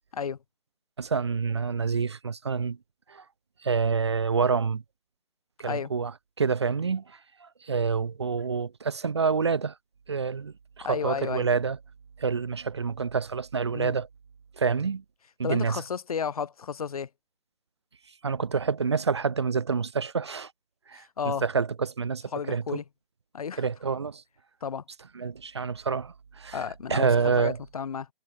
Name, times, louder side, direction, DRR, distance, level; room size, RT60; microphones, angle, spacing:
voice 1, 1.0-2.8 3.1-3.2 3.6-4.8 5.6-9.7 10.1-11.8 12.2-14.1 14.6-15.0 15.4-15.8 18.2-20.5 20.9-22.8 23.6-24.2 25.1-26.6 26.9-27.6, right 5 dB, 30° right, 0.7 m, -27 dB
voice 2, 10.8-11.5 13.7-14.0 15.4-17.1 20.9-21.4 22.3-22.8 23.3-23.6 24.6-24.8 26.5-28.1, left 7 dB, 35° left, 2.2 m, -32 dB
figure-of-eight pair, 145°, 30 cm